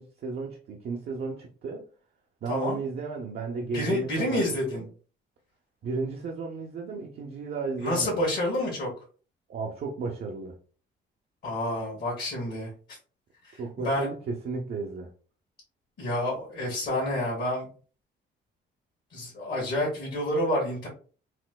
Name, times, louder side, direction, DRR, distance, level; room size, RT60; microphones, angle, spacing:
voice 1, 0.0-1.9 2.4-4.4 4.7-4.8 5.8-8.2 9.5-10.6 13.6-15.1, right 4 dB, 55° right, 0.6 m, -34 dB
voice 2, 2.5-2.8 3.7-4.8 7.8-8.9 11.4-12.7 13.5-14.1 16.0-17.7 19.1-20.9, left 1 dB, 50° left, 1.4 m, -28 dB
4.2 x 2.1 x 2.2 m
cardioid pair, 90°, 20 cm